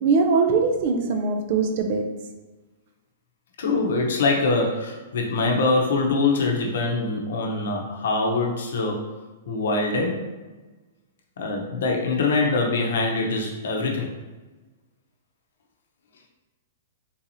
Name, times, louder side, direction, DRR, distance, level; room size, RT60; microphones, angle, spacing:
voice 1, 0.0-2.0, right 4 dB, 40° right, 5 dB, 0.4 m, -21 dB
voice 2, 3.6-9.1 9.5-10.3 11.4-14.1, left 3 dB, 75° left, 1 dB, 0.7 m, -24 dB
3.8 x 2.8 x 2.7 m, 1.2 s
hypercardioid pair, 170°, 0 cm